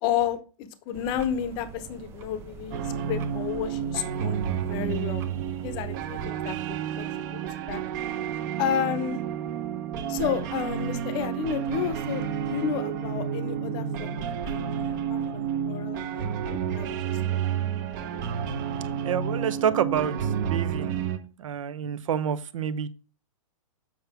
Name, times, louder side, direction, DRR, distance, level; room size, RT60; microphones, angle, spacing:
voice 1, 0.0-2.8 3.1-5.2 5.6-7.4 7.7-7.8 8.6-9.2 10.1-17.0 17.3-17.4, left 9 dB, 25° left, 0.9 m, -32 dB
sound 1, 0.9-6.3, right 6 dB, 15° right, 0.4 m, -44 dB
sound 2, 2.7-21.2, right 8 dB, 35° right, 0.9 m, -30 dB
voice 2, 19.0-21.0 21.4-22.9, right 8 dB, 65° right, 0.9 m, -28 dB
7.6 x 5.7 x 3.5 m
hypercardioid pair, 160°, 18 cm